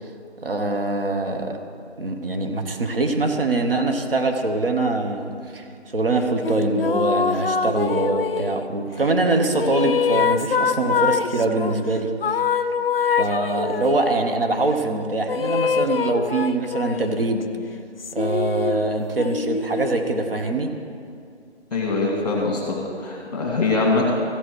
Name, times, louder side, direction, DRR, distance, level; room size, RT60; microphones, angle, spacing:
voice 1, 0.4-1.6 2.0-12.4 13.2-17.5 18.1-20.7, right 2 dB, 55° right, 4 dB, 1.2 m, -23 dB
sound 1, 6.4-8.7 9.3-11.8 12.2-14.1 15.3-17.2 18.0-20.3, left 6 dB, 55° left, 0.4 m, -24 dB
voice 2, 21.7-24.1, left 3 dB, 35° left, -3 dB, 1.9 m, -23 dB
14.5 x 5.2 x 6.3 m, 2.3 s
figure-of-eight pair, 165°, 35 cm